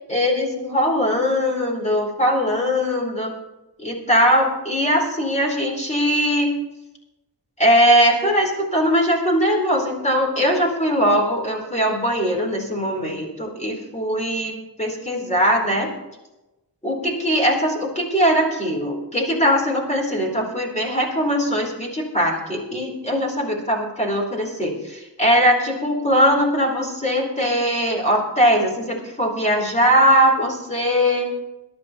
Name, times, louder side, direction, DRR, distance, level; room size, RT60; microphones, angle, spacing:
voice 1, 0.1-3.3 3.8-6.5 7.6-15.9 16.8-31.4, equal, 15° left, 0 dB, 4.3 m, -20 dB
22.0 x 12.0 x 3.1 m, 0.99 s
wide cardioid pair, 95°, 44 cm